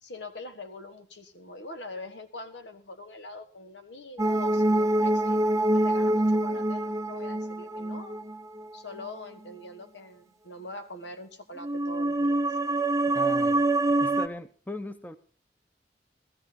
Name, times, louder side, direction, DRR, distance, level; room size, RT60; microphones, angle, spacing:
voice 1, 0.0-5.4 5.7-8.2 8.7-12.6, left 2 dB, 85° left, 9 dB, 1.6 m, -43 dB
sound 1, 4.2-9.0 11.6-14.3, right 1 dB, 20° right, 0.5 m, -25 dB
voice 2, 13.1-15.2, left 1 dB, 10° left, 10 dB, 0.8 m, -39 dB
14.5 x 14.0 x 4.2 m, 0.39 s
head